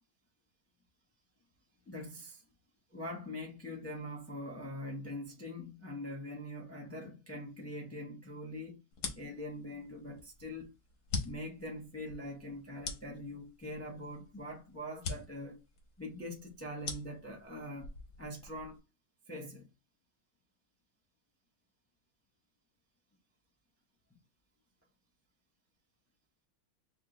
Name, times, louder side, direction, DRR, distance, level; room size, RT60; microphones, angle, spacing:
voice 1, 1.9-2.4 2.9-8.8 9.1-10.7 11.2-15.6 16.0-17.9 18.2-18.8 19.3-19.7, left 1 dB, 10° left, 0.7 m, -43 dB
sound 1, 8.9-18.8, left 4 dB, 85° left, 1.5 m, -44 dB
3.7 x 2.4 x 3.8 m
omnidirectional pair, 1.7 m